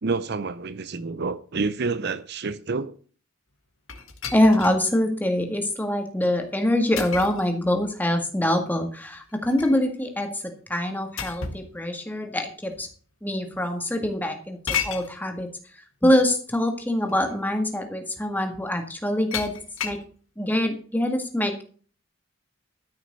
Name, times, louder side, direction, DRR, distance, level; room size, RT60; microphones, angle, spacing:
voice 1, 0.0-2.9, right 4 dB, 50° right, 0.6 m, -28 dB
sound 1, 3.9-4.8 5.4-5.5 7.0-7.5 9.1-9.8 11.2-11.7 12.7-12.8 14.7-15.1 16.5-16.6 17.1-17.3 19.3-20.1, left 7 dB, 70° left, 1.8 m, -32 dB
voice 2, 4.3-12.9 13.2-15.5 16.0-20.0 20.4-21.6, left 1 dB, 10° left, 1.8 m, -24 dB
13.0 x 6.3 x 6.6 m
head